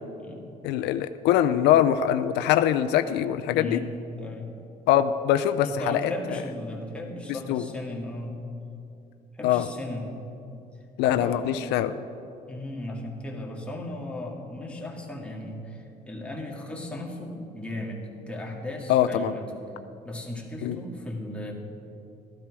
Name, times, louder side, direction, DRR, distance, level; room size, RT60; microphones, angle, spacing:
voice 1, 0.6-3.8 4.9-6.1 7.5-7.7 9.4-9.7 11.0-12.0 18.9-19.3 20.6-20.8, left 11 dB, 85° left, 10 dB, 0.5 m, -23 dB
voice 2, 3.5-3.9 4.2-4.5 5.6-8.4 9.3-10.1 11.1-11.5 12.5-19.4 20.0-21.5, left 1 dB, 5° left, -2 dB, 2.1 m, -36 dB
13.0 x 12.0 x 4.8 m, 2.7 s
cardioid pair, 110°, 17 cm